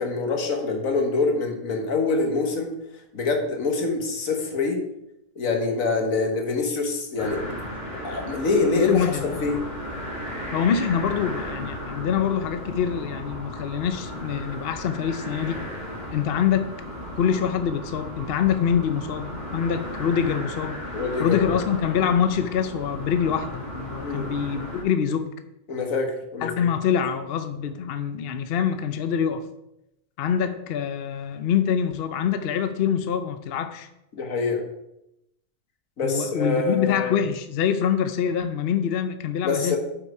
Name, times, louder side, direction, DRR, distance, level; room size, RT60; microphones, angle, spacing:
voice 1, 0.0-2.7 3.1-4.8 5.4-7.4 8.0-9.6 20.9-21.4 24.0-24.3 25.7-26.7 34.1-34.6 36.0-37.2 39.4-39.8, left 3 dB, 80° left, 3 dB, 1.8 m, -25 dB
sound 1, 7.2-24.8, equal, 35° left, 2.7 m, -35 dB
voice 2, 8.8-9.6 10.5-15.6 16.1-16.7 17.2-20.8 21.2-25.3 26.4-29.5 30.2-33.9 36.0-39.8, left 8 dB, 55° left, 9 dB, 0.8 m, -25 dB
8.6 x 5.9 x 4.7 m, 0.85 s
omnidirectional pair, 1.4 m